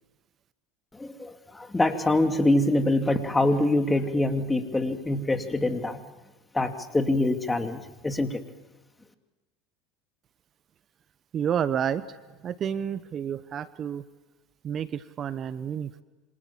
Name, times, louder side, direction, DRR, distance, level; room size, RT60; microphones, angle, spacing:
voice 1, 0.9-6.0 6.5-8.4, left 2 dB, 15° left, 6 dB, 2.7 m, -25 dB
voice 2, 11.3-12.0 12.4-14.0 14.6-16.0, right 8 dB, 40° right, 15 dB, 1.0 m, -30 dB
27.0 x 26.0 x 7.3 m, 1.2 s
hypercardioid pair, 80°, 0 cm